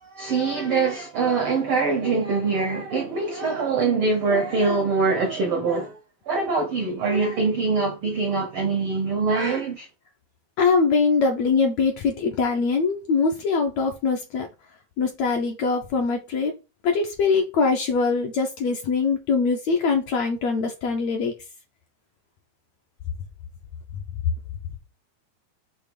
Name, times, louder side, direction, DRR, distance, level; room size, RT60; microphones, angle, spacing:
voice 1, 0.0-6.0 6.2-9.9, right 4 dB, 85° right, 1.2 m, -23 dB
voice 2, 10.6-14.5 15.0-16.5 16.8-21.3, left 4 dB, 75° left, 1.7 m, -22 dB
6.4 x 2.9 x 5.2 m
omnidirectional pair, 3.8 m